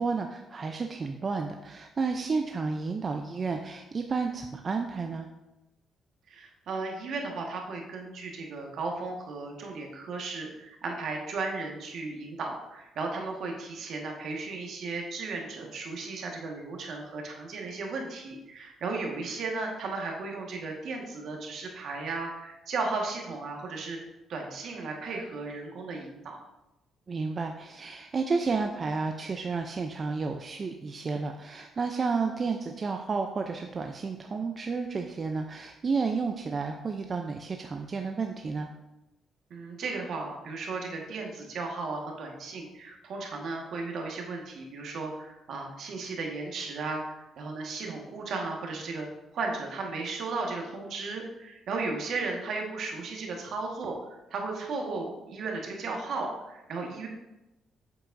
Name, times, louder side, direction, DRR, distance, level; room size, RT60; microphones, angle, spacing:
voice 1, 0.0-5.3 27.1-38.7, right 4 dB, 40° right, 4 dB, 0.5 m, -31 dB
voice 2, 6.3-24.0 24.3-26.4 39.5-49.1 49.3-57.1, right 3 dB, 70° right, 1 dB, 1.5 m, -35 dB
7.7 x 7.2 x 2.6 m, 0.97 s
cardioid pair, 90°, 0 cm